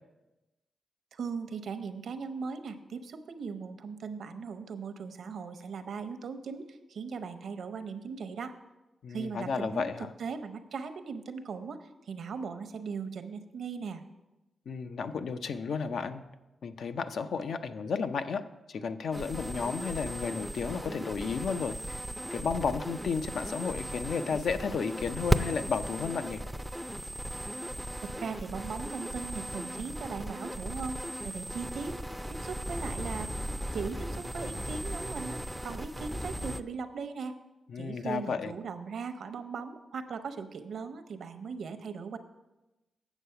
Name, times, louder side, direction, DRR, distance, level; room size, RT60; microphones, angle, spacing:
voice 1, 1.1-8.5 9.1-14.0 28.0-32.0 32.3-33.3 33.7-37.4 37.8-42.2, right 5 dB, 75° right, 8 dB, 0.7 m, -39 dB
voice 2, 9.0-10.1 14.7-16.2 16.6-18.4 18.7-22.0 22.3-26.4 37.7-38.5, left 5 dB, 75° left, 9 dB, 0.5 m, -33 dB
sound 1, 19.1-36.6, equal, ahead, 0.4 m, -36 dB
8.1 x 7.0 x 5.7 m, 1.0 s
cardioid pair, 95°, 0 cm